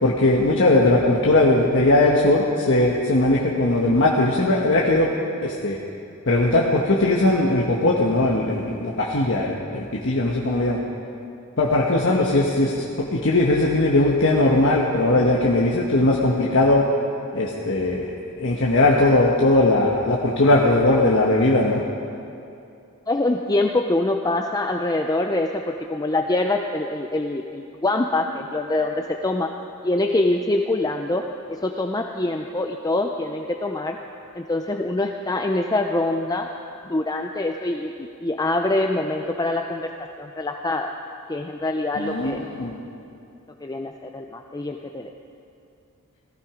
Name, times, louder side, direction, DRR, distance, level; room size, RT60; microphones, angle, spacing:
voice 1, 0.0-5.1 5.4-5.8 6.3-10.8 11.6-12.8 13.1-16.8 17.3-21.8 42.0-42.8, left 2 dB, 60° left, -3 dB, 1.3 m, -19 dB
voice 2, 23.1-29.5 29.8-34.0 34.3-36.5 36.9-39.9 40.2-40.9 41.3-42.4 43.6-45.1, left 2 dB, 15° left, 3 dB, 0.5 m, -24 dB
18.0 x 15.0 x 5.0 m, 2.6 s
head